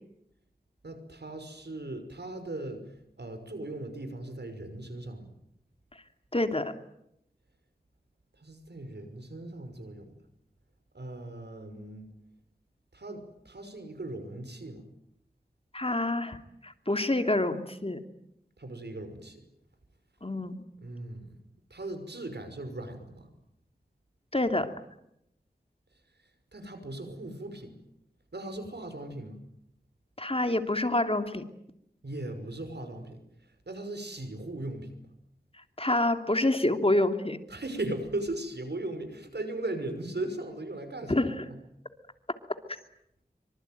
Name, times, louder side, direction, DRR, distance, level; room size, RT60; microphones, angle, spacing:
voice 1, 0.8-2.8 3.2-5.3 8.4-10.2 10.9-12.0 12.9-14.8 18.6-19.4 20.8-21.4 21.7-23.3 26.5-27.7 28.3-29.4 32.0-33.2 33.7-34.9 37.5-41.6, right 2 dB, 85° right, 8 dB, 5.8 m, -38 dB
voice 2, 6.3-6.7 15.7-16.4 16.6-18.0 20.2-20.6 24.3-24.7 30.2-31.5 35.8-37.4 41.1-41.4, left 1 dB, 35° left, 7 dB, 2.9 m, -27 dB
25.5 x 25.0 x 9.4 m, 0.78 s
wide cardioid pair, 40°, 17 cm